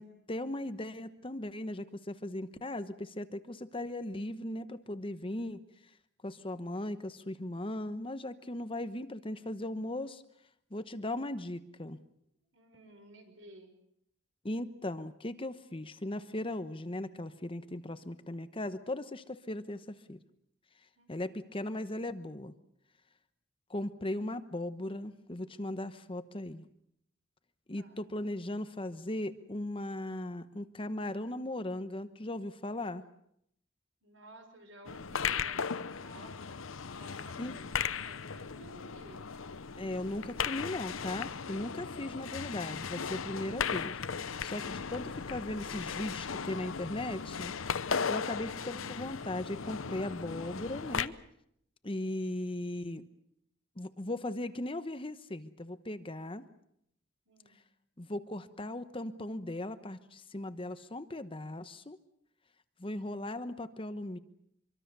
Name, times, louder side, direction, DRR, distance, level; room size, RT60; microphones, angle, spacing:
voice 1, 0.0-5.6 6.2-10.2 10.7-12.0 14.4-20.2 21.1-22.6 23.7-26.7 27.7-33.0 37.4-37.5 39.8-44.0 44.4-47.5 48.1-51.1 51.8-53.0 53.8-56.4 58.0-62.0 62.8-64.2, left 1 dB, 25° left, 12 dB, 1.0 m, -38 dB
voice 2, 12.5-13.7 21.0-21.6 27.8-28.0 34.0-39.3 57.3-57.6, right 1 dB, 70° right, 6 dB, 5.9 m, -56 dB
sound 1, 34.8-51.1, left 6 dB, 90° left, 0.9 m, -37 dB
25.0 x 24.0 x 6.8 m, 0.74 s
head